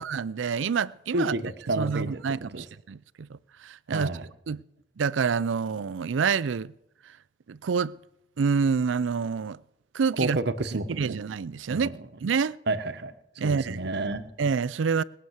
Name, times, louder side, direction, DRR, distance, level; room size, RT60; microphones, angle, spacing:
voice 1, 0.0-1.3 1.8-4.6 5.0-6.7 7.5-7.9 8.4-9.6 9.9-10.4 10.9-11.9 12.2-12.6 13.4-13.9 14.4-15.0, right 5 dB, 80° right, 0.4 m, -27 dB
voice 2, 1.1-2.2 2.5-2.6 3.9-4.3 10.2-11.0 11.7-11.9 12.7-13.1 13.4-14.2, right 2 dB, 60° right, 1.1 m, -29 dB
20.5 x 6.9 x 8.0 m
head